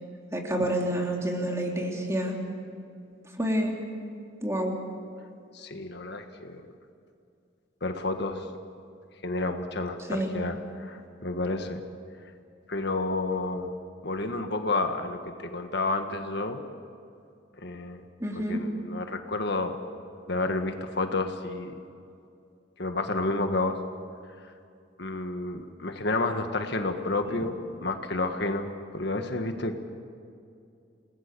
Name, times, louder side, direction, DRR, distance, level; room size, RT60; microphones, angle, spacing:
voice 1, 0.3-2.3 3.4-3.7 4.4-4.7 10.1-10.3 18.2-18.6 27.3-27.4, right 1 dB, 15° right, 0 dB, 3.3 m, -28 dB
voice 2, 5.5-6.6 7.8-8.4 9.2-11.8 12.7-13.7 14.0-16.7 17.6-18.0 18.5-19.8 20.3-21.7 22.8-23.8 25.0-29.8, left 2 dB, 60° left, 6 dB, 1.6 m, -30 dB
29.5 x 19.5 x 6.9 m, 2.5 s
head